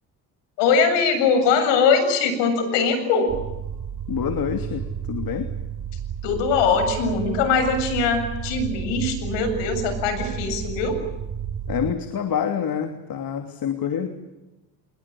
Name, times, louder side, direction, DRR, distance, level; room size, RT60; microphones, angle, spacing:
voice 1, 0.6-3.3 6.2-11.0, left 5 dB, 85° left, 9 dB, 7.6 m, -21 dB
sound 1, 3.3-11.9, right 9 dB, 55° right, 4.5 m, -32 dB
voice 2, 4.1-5.5 11.7-14.1, left 8 dB, 55° left, 7 dB, 3.0 m, -27 dB
28.0 x 21.5 x 8.7 m, 1.0 s
supercardioid pair, 75°, 42 cm